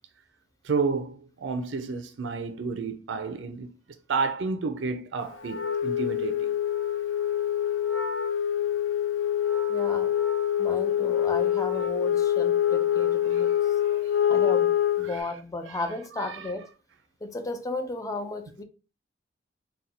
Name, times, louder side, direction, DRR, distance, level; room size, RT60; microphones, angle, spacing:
voice 1, 0.6-3.7 4.1-6.5 13.3-14.2 15.0-15.3 15.7-15.8 16.1-16.5, right 4 dB, 75° right, 0.5 m, -31 dB
Wind instrument woodwind instrument, 5.4-15.2, left 10 dB, 75° left, 0.5 m, -25 dB
voice 2, 9.7-10.1 10.6-13.7 14.3-14.7 15.0-16.7 17.2-18.6, left 2 dB, 20° left, 0.5 m, -34 dB
4.2 x 2.3 x 3.8 m
head